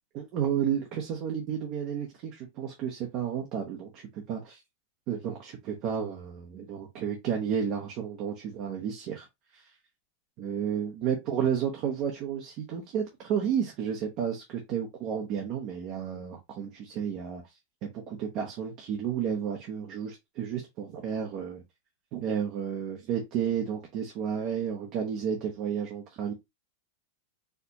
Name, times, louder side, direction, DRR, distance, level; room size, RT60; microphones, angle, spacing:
voice 1, 0.1-4.6 5.1-9.3 9.5-9.7 10.4-17.4 17.8-21.6 22.1-26.3, right 8 dB, 35° right, 0.6 m, -32 dB
4.3 x 2.1 x 2.7 m
supercardioid pair, 160°, 0 cm